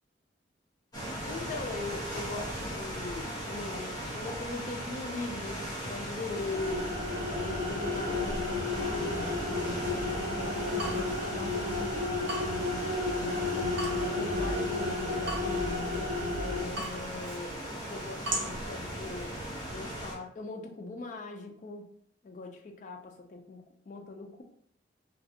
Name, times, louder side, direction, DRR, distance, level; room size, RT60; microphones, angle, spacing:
sound 1, 0.9-20.1, equal, 20° left, 0.8 m, -38 dB
voice 1, 1.2-6.9 7.3-8.9 9.7-12.2 13.0-15.8 16.4-19.4 19.7-21.9 22.2-24.4, left 3 dB, 40° left, 3 dB, 0.3 m, -41 dB
sound 2, 6.3-16.6, left 2 dB, 25° right, 1.1 m, -32 dB
Water tap faucet / Drip, 10.4-19.7, right 2 dB, 65° right, 0.6 m, -42 dB
2.4 x 2.3 x 2.7 m, 0.66 s
head